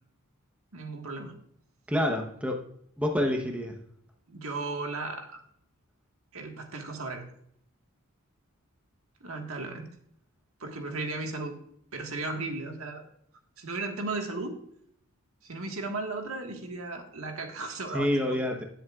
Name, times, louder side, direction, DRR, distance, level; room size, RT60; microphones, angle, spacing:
voice 1, 0.7-1.3 4.3-5.4 6.3-7.2 9.2-9.9 10.6-11.6 11.9-13.0 13.6-14.6 15.4-18.4, right 3 dB, 75° right, 3 dB, 1.6 m, -35 dB
voice 2, 1.9-2.6 3.0-3.8 17.9-18.6, left 1 dB, 5° right, 2 dB, 0.9 m, -27 dB
17.5 x 7.7 x 2.4 m, 0.68 s
head